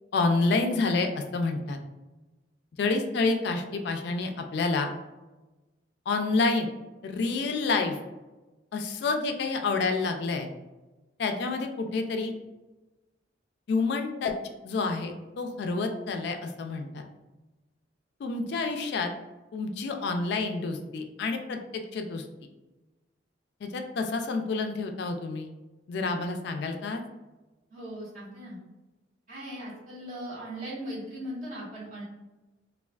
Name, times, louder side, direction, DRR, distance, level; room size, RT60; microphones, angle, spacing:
voice 1, 0.1-1.8 2.8-4.9 6.1-6.7 7.0-8.0 8.7-10.5 11.2-12.3 13.7-14.3 14.6-17.0 18.2-19.1 19.5-22.3 23.6-25.5 25.9-27.0, left 3 dB, 60° left, 5 dB, 0.3 m, -28 dB
voice 2, 27.7-28.6 29.3-32.0, equal, 45° right, -9 dB, 1.4 m, -38 dB
3.2 x 2.3 x 2.3 m, 1.1 s
head